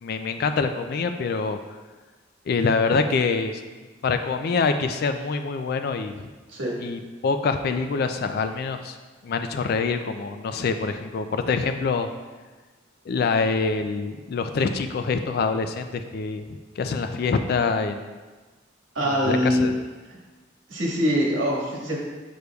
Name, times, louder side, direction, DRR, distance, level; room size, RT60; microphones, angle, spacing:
voice 1, 0.0-1.6 2.5-3.6 4.0-6.3 6.8-9.0 9.2-12.1 13.1-16.4 16.8-18.1 19.0-19.7, left 4 dB, 55° left, 8 dB, 0.3 m, -25 dB
voice 2, 18.9-19.7 20.7-22.0, equal, 85° right, -3 dB, 1.5 m, -23 dB
6.7 x 6.4 x 2.3 m, 1.3 s
head